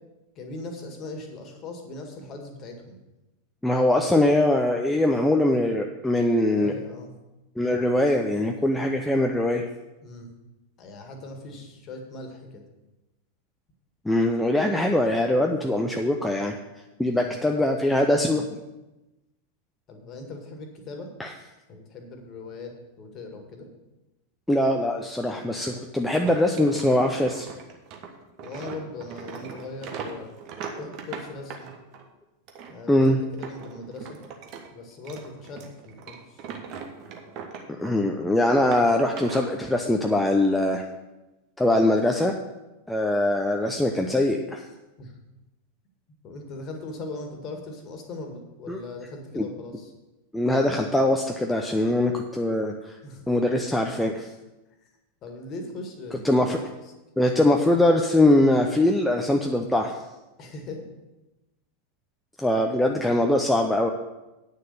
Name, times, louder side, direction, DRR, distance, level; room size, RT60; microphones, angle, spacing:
voice 1, 0.4-3.0 6.5-7.1 10.0-10.3 10.8-12.6 17.1-17.4 19.9-21.1 21.7-22.7 23.0-23.7 28.4-30.3 30.8-31.7 32.7-33.1 33.4-34.2 34.7-36.5 45.0-45.2 46.2-49.9 53.0-53.2 54.8-54.9 55.2-56.2 56.8-56.9 60.4-60.8, left 2 dB, 30° left, 4 dB, 1.9 m, -39 dB
voice 2, 3.6-6.7 7.6-9.7 14.0-16.6 17.0-18.4 21.2-21.3 24.5-27.5 32.9-33.2 37.8-40.9 41.6-42.3 42.9-44.6 48.7-48.8 49.4-49.5 50.3-53.0 53.3-54.1 56.2-56.6 57.2-59.9 62.4-63.9, left 1 dB, 5° left, 2 dB, 0.6 m, -22 dB
sound 1, 26.1-32.1 32.5-34.7 34.9-38.1 38.4-39.5, right 6 dB, 40° right, 1.3 m, -40 dB
9.1 x 6.6 x 6.8 m, 1.0 s
figure-of-eight pair, 90°, 0 cm